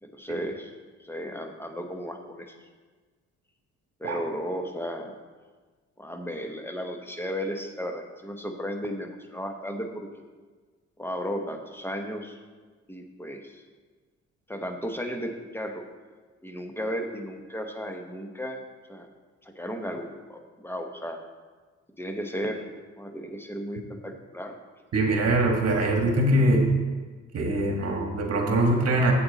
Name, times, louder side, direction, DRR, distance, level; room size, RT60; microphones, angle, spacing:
voice 1, 0.0-0.7 1.0-2.5 4.0-5.1 6.0-10.1 11.0-12.4 12.9-13.6 14.5-15.9 16.4-18.6 18.9-19.1 19.4-21.2 22.0-22.7 23.0-24.5, equal, 5° left, 5 dB, 1.0 m, -34 dB
voice 2, 24.9-26.6 27.3-29.1, right 1 dB, 55° right, 2 dB, 1.6 m, -23 dB
7.9 x 7.8 x 4.0 m, 1.4 s
cardioid pair, 90°, 30 cm